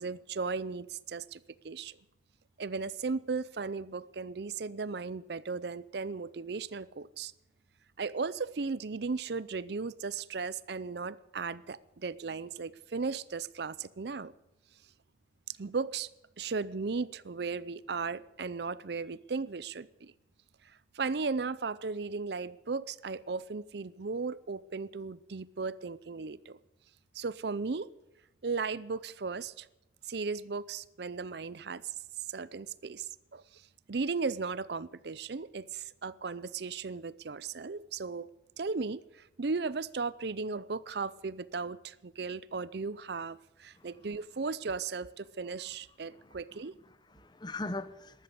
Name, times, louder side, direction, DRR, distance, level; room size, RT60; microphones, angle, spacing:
voice 1, 0.0-2.0 2.6-7.3 8.0-14.3 15.5-16.1 16.4-20.1 20.9-26.6 27.1-27.9 28.4-29.7 30.0-31.8 32.3-33.6 33.9-38.3 38.6-46.7, right 4 dB, 60° right, 0.6 m, -36 dB
voice 2, 46.0-48.2, left 2 dB, 25° left, 0.8 m, -42 dB
13.5 x 13.0 x 8.1 m
head